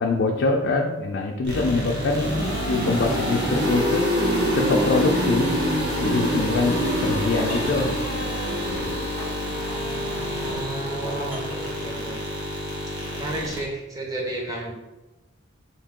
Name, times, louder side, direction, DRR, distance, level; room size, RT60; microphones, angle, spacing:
voice 1, 0.0-2.3 2.7-4.1 4.5-5.5 5.8-8.4, left 3 dB, 55° left, 0 dB, 0.4 m, -24 dB
sound 1, 1.4-13.6, equal, 55° right, 1.1 m, -26 dB
voice 2, 1.6-2.2 9.4-12.2 13.1-14.7, right 1 dB, 15° right, -2 dB, 0.7 m, -33 dB
sound 2, 6.9-7.8 8.5-10.0 10.5-11.8, equal, 40° right, 1.3 m, -38 dB
3.7 x 2.6 x 3.6 m, 1.1 s
head